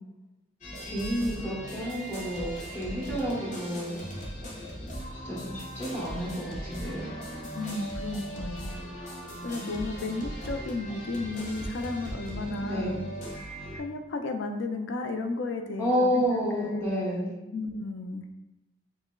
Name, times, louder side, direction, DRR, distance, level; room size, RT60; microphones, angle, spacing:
sound 1, 0.6-13.8, equal, 40° left, 0.7 m, -39 dB
voice 1, 0.8-4.0 5.1-7.1 12.6-13.0 15.8-17.3, equal, 10° left, -7 dB, 0.8 m, -30 dB
voice 2, 7.5-8.7 9.4-13.0 13.7-16.9 17.5-18.2, left 2 dB, 75° left, 6 dB, 0.4 m, -33 dB
5.9 x 2.0 x 2.2 m, 1.0 s
head